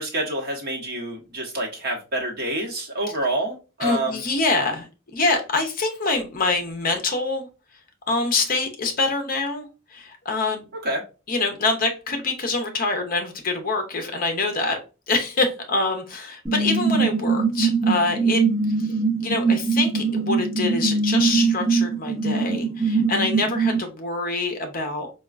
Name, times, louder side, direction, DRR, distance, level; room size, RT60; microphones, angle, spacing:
voice 1, 0.0-4.2 10.8-11.0, right 1 dB, 45° right, -1 dB, 1.0 m, -27 dB
voice 2, 3.8-7.5 8.1-10.6 11.3-14.8 15.1-18.4 18.8-18.9 19.2-25.1, left 3 dB, 40° left, 5 dB, 0.6 m, -25 dB
sound 1, 16.5-23.8, right 4 dB, 5° right, 1.3 m, -22 dB
4.2 x 2.3 x 2.4 m, 0.32 s
head